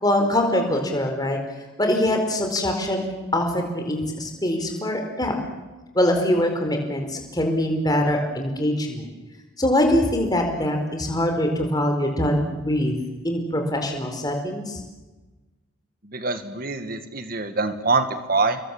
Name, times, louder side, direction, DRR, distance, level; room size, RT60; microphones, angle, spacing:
voice 1, 0.0-1.4 1.8-3.0 3.3-5.3 5.9-9.1 9.6-12.9 13.2-14.8, left 1 dB, 20° left, 3 dB, 4.6 m, -23 dB
voice 2, 16.0-18.6, right 3 dB, 45° right, 9 dB, 2.1 m, -24 dB
30.0 x 22.5 x 7.4 m, 1.2 s
head